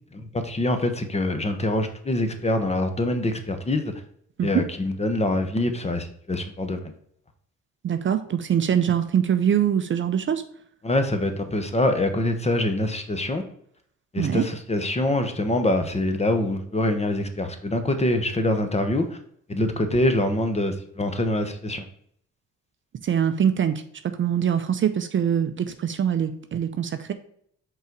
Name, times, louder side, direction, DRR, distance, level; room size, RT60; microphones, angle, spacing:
voice 1, 0.1-3.9 4.4-6.9 10.8-13.4 14.1-19.2 19.5-21.8, left 1 dB, 20° left, 7 dB, 0.9 m, -25 dB
voice 2, 7.8-10.4 14.2-14.4 23.0-27.1, right 8 dB, 40° right, 9 dB, 0.5 m, -23 dB
5.5 x 3.9 x 4.5 m, 0.66 s
cardioid pair, 90°, 30 cm